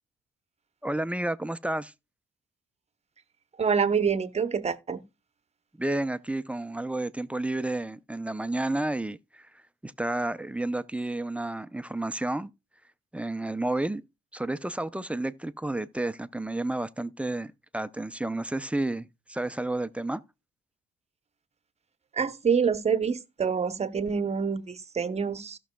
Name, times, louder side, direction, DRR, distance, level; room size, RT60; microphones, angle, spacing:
voice 1, 0.8-1.9 5.8-9.5 9.8-12.5 13.1-14.0 14.3-20.2, right 2 dB, 5° right, 0.5 m, -31 dB
voice 2, 3.6-5.0 22.1-25.6, right 6 dB, 35° right, 0.8 m, -26 dB
16.0 x 6.2 x 2.2 m
cardioid pair, 90°, 20 cm